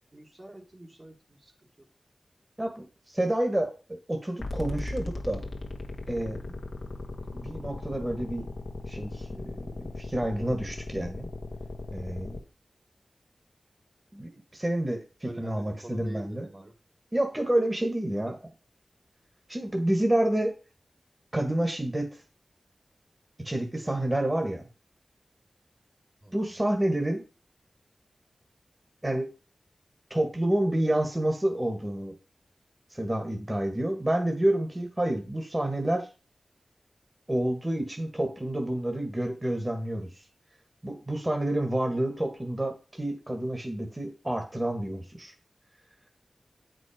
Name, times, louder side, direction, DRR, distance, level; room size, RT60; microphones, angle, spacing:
voice 1, 0.1-1.5 1.8-1.9 15.2-16.7 18.2-18.4 26.2-26.6, right 1 dB, 40° right, 0 dB, 1.8 m, -45 dB
voice 2, 2.6-5.4 6.1-6.6 7.3-8.5 8.9-11.3 11.9-12.4 14.1-16.5 17.1-18.4 19.5-20.5 21.3-22.1 23.4-24.6 26.3-27.2 29.0-29.3 30.1-32.1 32.9-36.1 37.3-40.1 40.8-45.3, right 1 dB, 20° right, 4 dB, 1.7 m, -29 dB
sound 1, 4.4-12.4, left 2 dB, 75° left, 1.3 m, -38 dB
7.9 x 5.4 x 5.1 m, 0.32 s
cardioid pair, 50°, 0 cm